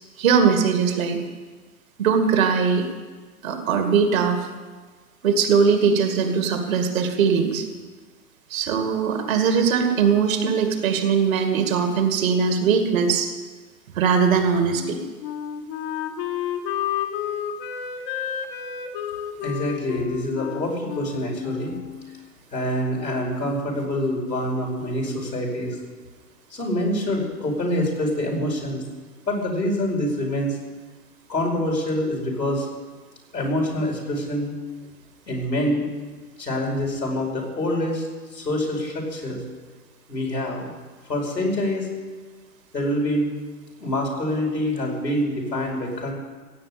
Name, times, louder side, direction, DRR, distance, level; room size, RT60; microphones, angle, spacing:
voice 1, 0.2-1.2 2.0-2.9 3.4-4.4 5.2-7.7 8.5-13.3 14.0-15.0, right 6 dB, 55° right, 5 dB, 2.3 m, -20 dB
Wind instrument woodwind instrument, 14.7-22.2, left 9 dB, 35° left, 1.3 m, -31 dB
voice 2, 19.4-21.7 22.5-25.8 26.5-28.8 29.3-30.6 31.3-32.7 33.3-34.5 35.3-35.8 36.4-38.1 38.3-39.4 40.1-40.7 41.1-41.9 42.7-43.3 43.8-46.1, left 1 dB, 85° left, 0 dB, 4.9 m, -25 dB
16.5 x 8.1 x 8.6 m, 1.4 s
figure-of-eight pair, 115°, 48 cm